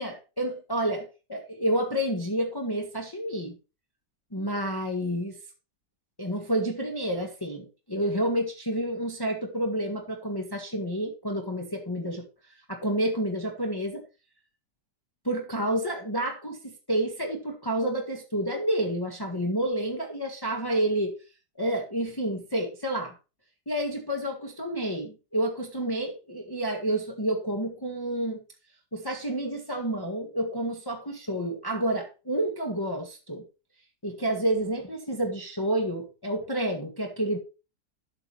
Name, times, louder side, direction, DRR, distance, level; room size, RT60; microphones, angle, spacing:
voice 1, 0.0-3.6 4.3-5.4 6.2-12.2 12.7-14.0 15.2-21.1 21.6-23.1 23.7-28.4 28.9-33.4 34.0-37.4, right 1 dB, 15° left, 2 dB, 1.8 m, -29 dB
13.0 x 7.2 x 3.3 m, 0.30 s
omnidirectional pair, 1.9 m